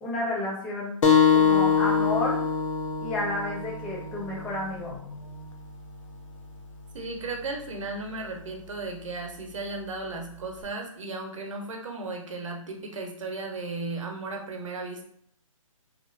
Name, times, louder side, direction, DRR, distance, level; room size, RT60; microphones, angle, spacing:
voice 1, 0.0-1.0 1.3-2.4 3.0-5.0, left 2 dB, 5° left, -5 dB, 0.4 m, -31 dB
sound 1, 1.0-6.2, left 6 dB, 60° left, 0.6 m, -25 dB
voice 2, 6.9-15.1, right 3 dB, 65° right, 2 dB, 0.7 m, -35 dB
2.9 x 2.2 x 2.5 m, 0.64 s
hypercardioid pair, 155°, 18 cm